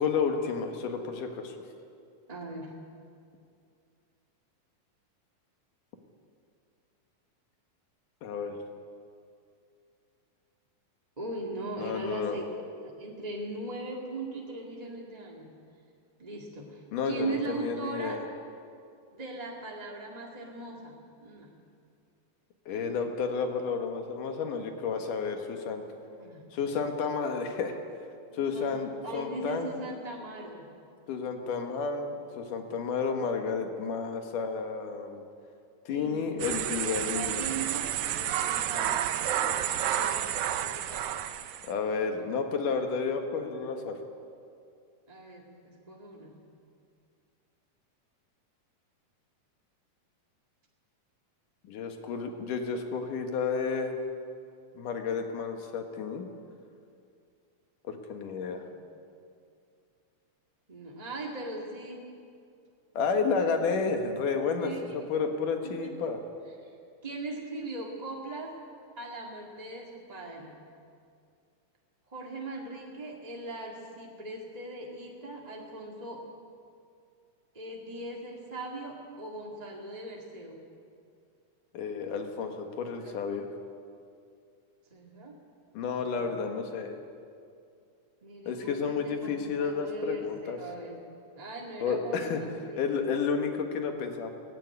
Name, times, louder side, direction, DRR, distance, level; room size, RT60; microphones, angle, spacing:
voice 1, 0.0-1.6 8.2-8.6 11.8-12.4 16.9-18.2 22.7-25.8 26.5-27.8 28.3-29.7 31.1-35.2 35.9-37.4 41.7-44.0 51.7-53.9 54.7-56.3 57.8-58.6 63.0-66.2 81.7-83.5 85.7-87.0 88.5-90.6 91.8-92.4 92.8-94.3, left 5 dB, 80° left, 5 dB, 3.2 m, -31 dB
voice 2, 2.3-2.8 11.2-15.6 16.2-18.3 19.1-21.5 26.2-26.5 28.3-30.7 35.9-36.3 36.8-39.6 39.9-40.2 40.6-41.2 45.1-46.3 58.5-58.8 60.7-62.1 64.6-65.2 65.6-66.1 66.6-66.7 67.0-68.6 69.0-70.6 72.1-76.3 77.5-80.6 83.0-83.2 84.9-85.4 86.0-86.3 88.2-91.1 91.4-93.0, right 2 dB, 20° right, -2 dB, 1.2 m, -40 dB
sound 1, 36.4-41.7, right 10 dB, 80° right, 1.4 m, -30 dB
18.0 x 16.5 x 9.7 m, 2.4 s
omnidirectional pair, 3.7 m